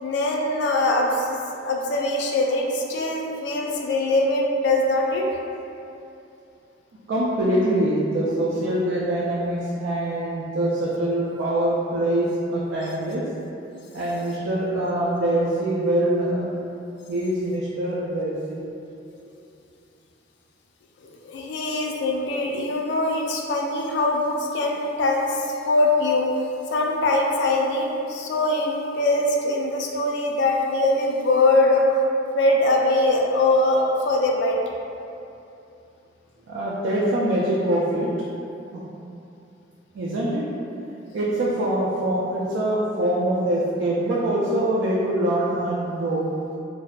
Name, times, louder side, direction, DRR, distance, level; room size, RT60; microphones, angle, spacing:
voice 1, 0.0-1.4 1.6-5.3 21.0-26.4 26.7-32.0 32.3-34.6, left 2 dB, 65° left, 0 dB, 0.3 m, -22 dB
voice 2, 7.1-13.2 13.9-16.5 17.1-18.7 36.5-38.1 38.7-38.8 39.9-40.4 41.1-46.3, right 1 dB, 80° right, -7 dB, 0.3 m, -24 dB
2.6 x 2.1 x 2.3 m, 2.7 s
head